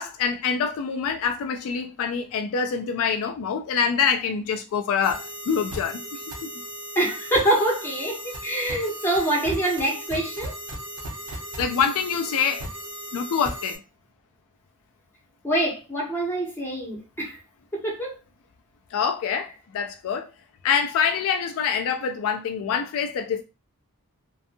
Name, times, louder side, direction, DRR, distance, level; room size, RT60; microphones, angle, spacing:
voice 1, 0.0-6.0 6.4-6.5 11.6-12.6 13.1-13.8 18.9-20.3 20.6-23.4, left 6 dB, 65° left, 0.3 m, -25 dB
sound 1, 5.0-13.8, right 1 dB, 80° right, 0.9 m, -36 dB
voice 2, 7.0-10.5 15.4-17.4 17.7-18.1, right 1 dB, 10° left, 0.9 m, -25 dB
2.6 x 2.3 x 2.6 m
head